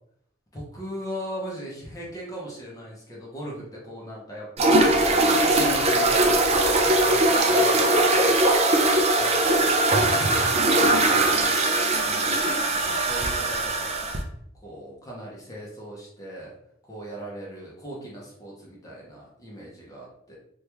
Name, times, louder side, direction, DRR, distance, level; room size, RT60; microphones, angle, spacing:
voice 1, 0.5-4.8 5.5-8.4 9.2-9.3 9.9-11.5 12.0-14.2 14.6-16.5 16.9-20.4, equal, 20° left, -4 dB, 0.7 m, -39 dB
sound 1, 4.6-14.2, right 2 dB, 35° right, 0.4 m, -20 dB
2.9 x 2.3 x 3.3 m, 0.72 s
head